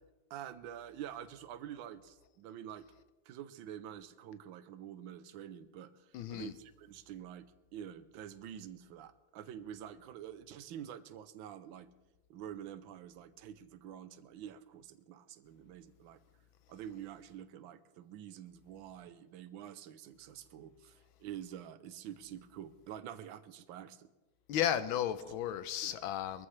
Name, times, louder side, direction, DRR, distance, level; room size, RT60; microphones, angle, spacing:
voice 1, 0.3-2.9 3.2-11.9 12.3-16.2 16.7-24.1 25.8-25.9, right 10 dB, 80° right, 1.5 m, -47 dB
voice 2, 6.1-6.5 24.5-26.5, left 10 dB, 90° left, 1.5 m, -34 dB
22.5 x 14.5 x 3.3 m
omnidirectional pair, 2.2 m